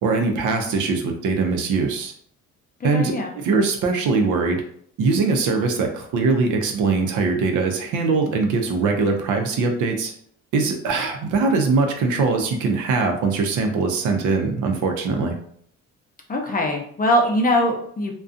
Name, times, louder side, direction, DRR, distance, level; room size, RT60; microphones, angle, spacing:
voice 1, 0.0-2.1 2.8-4.6 5.0-10.1 10.5-15.3, right 4 dB, 85° right, 4 dB, 0.6 m, -22 dB
voice 2, 2.8-3.3 16.3-18.1, left 1 dB, 30° left, 1 dB, 0.5 m, -21 dB
2.4 x 2.2 x 2.5 m, 0.62 s
cardioid pair, 90°, 30 cm